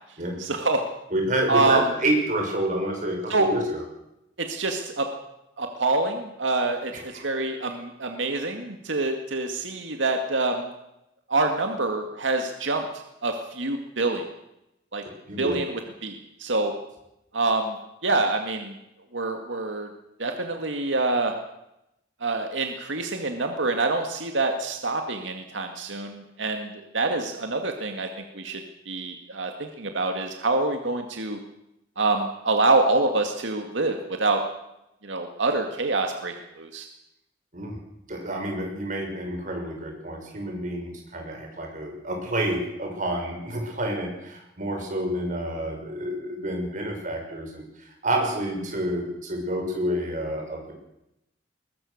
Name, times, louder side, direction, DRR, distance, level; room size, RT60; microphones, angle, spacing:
voice 1, 0.4-0.8 1.5-1.9 3.3-3.5 4.4-5.1 5.6-10.7 11.3-12.9 13.2-14.3 14.9-15.0 15.4-15.7 16.0-16.7 17.3-17.8 18.0-18.8 19.1-19.9 20.2-21.4 22.2-31.4 32.0-34.4 35.0-36.9, right 2 dB, 90° right, 4 dB, 2.1 m, -26 dB
voice 2, 1.1-3.8 6.9-7.2 15.3-15.6 37.5-37.8 38.1-47.6 48.0-50.7, right 1 dB, 45° right, 1 dB, 6.3 m, -28 dB
21.5 x 20.5 x 6.6 m, 0.86 s
head